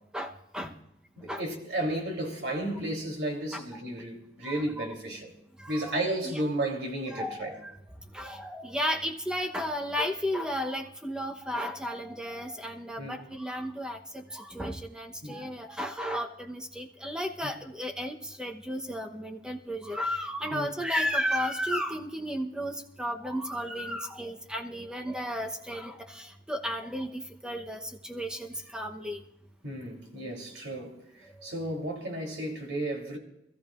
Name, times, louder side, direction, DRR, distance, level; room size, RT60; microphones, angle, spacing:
voice 1, 0.1-0.7 1.3-1.4 3.5-3.6 4.4-4.8 5.6-5.8 7.1-7.7 8.1-29.2, equal, 5° right, 0.9 m, -34 dB
voice 2, 1.2-5.3 5.7-7.5 13.0-13.2 15.2-15.5 17.4-17.5 20.5-20.7 29.6-33.2, right 1 dB, 90° right, 3.4 m, -33 dB
25.0 x 14.0 x 2.5 m
head